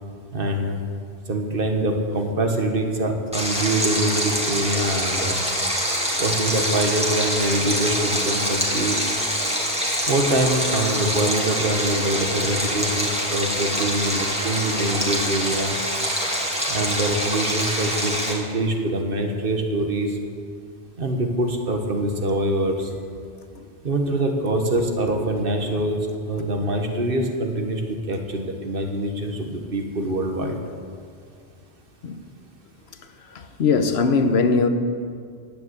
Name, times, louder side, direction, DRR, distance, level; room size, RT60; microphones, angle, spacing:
voice 1, 0.3-0.8 1.3-5.3 6.2-9.0 10.1-15.8 16.7-20.1 21.0-22.9 23.8-26.0 26.3-27.8 28.1-30.6, right 1 dB, 55° right, 4 dB, 1.5 m, -24 dB
Stream, 3.3-18.3, equal, 5° right, 2.1 m, -25 dB
voice 2, 33.6-34.7, left 4 dB, 70° left, 8 dB, 1.1 m, -19 dB
10.5 x 9.4 x 8.0 m, 2.2 s
omnidirectional pair, 1.1 m